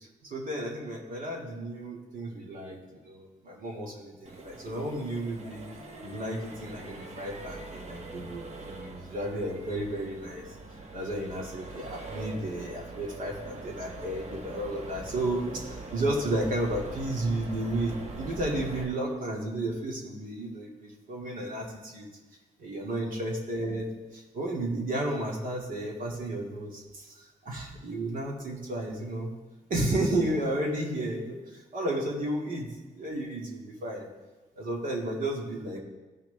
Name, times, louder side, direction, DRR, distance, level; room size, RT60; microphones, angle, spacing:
voice 1, 0.2-5.6 6.0-10.6 10.9-22.1 22.6-23.9 24.1-29.3 29.7-34.1 34.6-35.8, right 1 dB, 75° right, -1 dB, 2.3 m, -33 dB
Accelerating revving vroom, 4.2-18.8, right 2 dB, 50° right, 1.3 m, -43 dB
16.0 x 6.0 x 3.4 m, 1.2 s
cardioid pair, 85°, 14 cm